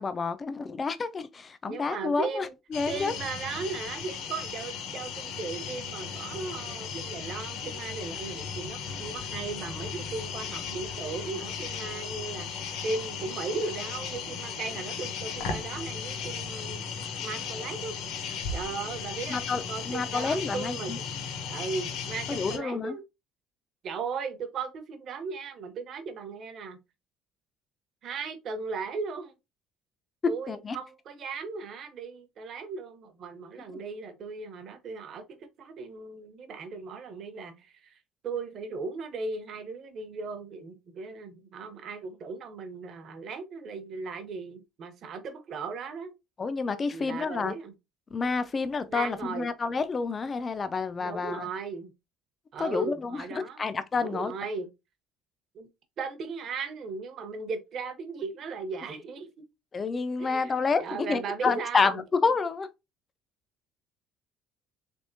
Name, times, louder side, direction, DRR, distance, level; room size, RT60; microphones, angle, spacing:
voice 1, 0.0-3.1 19.3-21.0 22.3-23.0 30.5-30.8 46.4-47.5 48.1-51.5 52.6-54.3 59.7-62.7, left 4 dB, 20° left, 0.3 m, -29 dB
voice 2, 1.7-2.5 2.9-16.9 17.2-18.0 18.5-21.0 21.5-23.0 23.8-26.8 28.0-29.3 30.3-38.0 38.2-46.1 46.9-47.7 48.9-49.5 51.0-51.9 52.5-53.6 54.0-54.7 55.5-55.7 56.0-59.3 60.2-60.5 60.8-62.0, right 4 dB, 40° right, 0.7 m, -37 dB
sound 1, 2.7-22.6, left 6 dB, 65° left, 0.8 m, -36 dB
3.5 x 3.4 x 2.6 m
cardioid pair, 175°, 0 cm